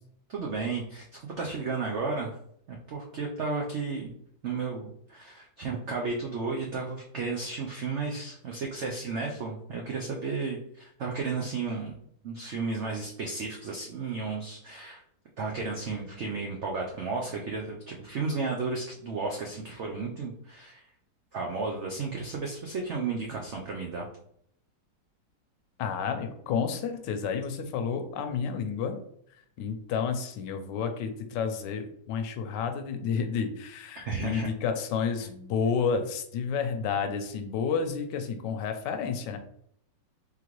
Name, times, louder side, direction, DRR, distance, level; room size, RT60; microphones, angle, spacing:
voice 1, 0.3-2.4 2.7-4.1 4.4-12.0 12.2-15.0 15.4-20.8 21.3-24.1 34.0-34.5, right 4 dB, 90° right, 0 dB, 0.6 m, -33 dB
voice 2, 25.8-29.0 29.6-39.4, left 6 dB, 80° left, 6 dB, 1.2 m, -30 dB
3.8 x 3.3 x 3.0 m, 0.69 s
omnidirectional pair, 1.9 m